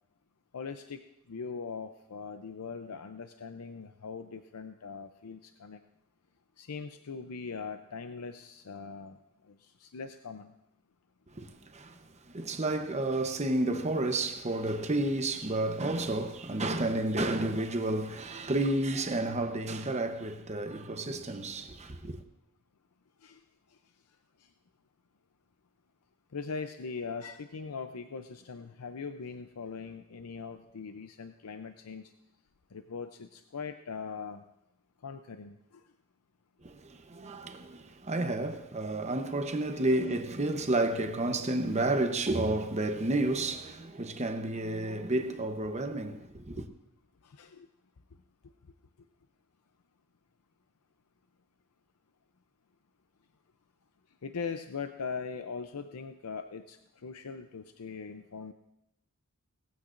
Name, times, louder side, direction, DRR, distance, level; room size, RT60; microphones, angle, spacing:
voice 1, 0.5-1.0 1.3-5.8 6.6-9.2 9.4-10.5 23.2-23.4 26.3-32.1 32.7-34.4 35.0-35.8 47.2-47.7 54.2-58.5, left 5 dB, 90° left, 0.6 m, -41 dB
voice 2, 12.3-22.2 36.6-46.7, right 2 dB, 30° right, 0.9 m, -31 dB
19.0 x 15.0 x 2.6 m
head